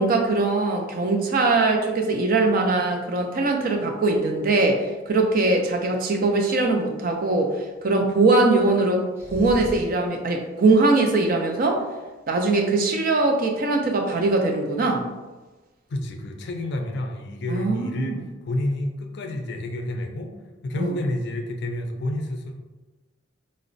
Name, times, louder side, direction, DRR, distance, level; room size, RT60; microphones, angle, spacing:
voice 1, 0.0-11.8 12.3-15.1 17.5-18.2 20.7-20.9, right 3 dB, 50° right, 2 dB, 0.4 m, -21 dB
sound 1, 9.1-10.0, equal, 15° right, 0.7 m, -35 dB
voice 2, 15.9-20.3 20.6-22.5, left 1 dB, 60° left, 3 dB, 0.4 m, -29 dB
4.1 x 2.0 x 2.5 m, 1.2 s
head